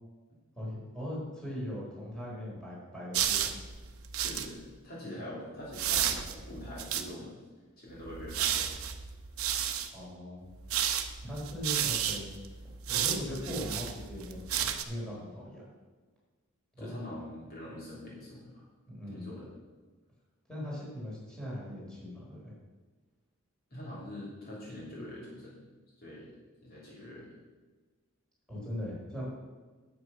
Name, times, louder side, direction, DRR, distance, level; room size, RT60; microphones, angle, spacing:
voice 1, 0.6-3.6 9.9-10.4 11.2-12.3 12.8-15.6 16.7-16.9 18.9-19.3 20.5-22.5 28.5-29.3, equal, 5° left, -6 dB, 3.8 m, -39 dB
sound 1, 3.1-4.5 5.7-7.1 7.9-9.9 10.6-14.8, right 9 dB, 80° right, 0.8 m, -32 dB
voice 2, 4.2-7.4 7.8-8.7 16.8-18.6 19.1-19.5 23.7-25.6 26.0-26.3 26.6-27.3, left 1 dB, 45° left, -6 dB, 3.1 m, -44 dB
9.5 x 8.2 x 5.9 m, 1.3 s
head